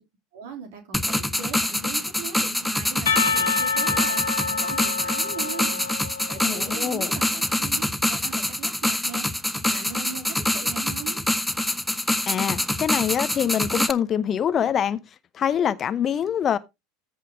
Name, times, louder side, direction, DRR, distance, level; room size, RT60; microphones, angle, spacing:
voice 1, 0.3-11.2, right 7 dB, 65° right, 3.2 m, -39 dB
sound 1, 0.9-13.9, left 1 dB, 5° left, 0.8 m, -25 dB
Percussion, 3.1-7.0, left 5 dB, 75° left, 1.4 m, -27 dB
voice 2, 6.4-7.1 12.3-15.0 15.3-16.6, left 9 dB, 35° left, 0.7 m, -24 dB
14.0 x 5.6 x 3.6 m
figure-of-eight pair, 75°, 0 cm